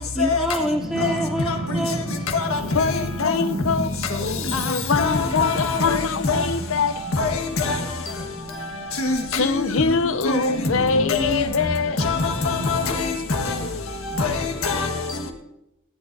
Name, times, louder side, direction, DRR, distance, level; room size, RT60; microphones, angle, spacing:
voice 1, 0.2-2.2, equal, 5° right, 0.5 m, -26 dB
sound 1, 0.6-14.6, right 1 dB, 50° right, 1.6 m, -36 dB
voice 2, 2.7-3.9 4.5-6.9 9.3-12.0, left 4 dB, 70° left, 0.6 m, -23 dB
voice 3, 5.0-6.0 6.2-6.4 7.2-7.3 7.6-7.7 9.0-9.6 10.2-10.4 11.1-11.4 12.0-13.1 13.4-13.5 14.2-14.3 14.6-14.9, left 4 dB, 90° left, 1.5 m, -23 dB
18.0 x 11.0 x 2.7 m
head